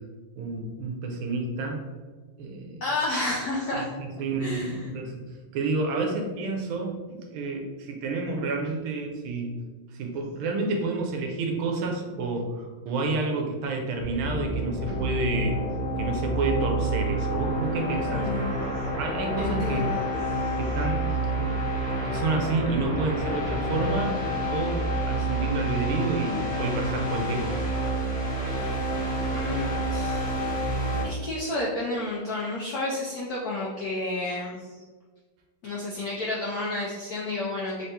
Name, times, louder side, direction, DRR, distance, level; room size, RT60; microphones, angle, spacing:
voice 1, 0.4-1.8 2.4-2.8 3.7-5.2 5.5-9.5 9.9-15.6 16.0-18.5 19.0-19.9 20.6-24.2 24.5-27.7, right 3 dB, 85° right, 2 dB, 1.5 m, -30 dB
voice 2, 2.8-3.9 4.4-4.8 18.1-18.7 19.4-20.0 20.4-20.5 29.3-30.2 31.0-34.8 35.6-37.8, left 2 dB, 75° left, -5 dB, 0.8 m, -31 dB
sound 1, 14.0-31.0, right 1 dB, 35° left, 1.2 m, -28 dB
3.8 x 2.8 x 3.4 m, 1.4 s
omnidirectional pair, 2.3 m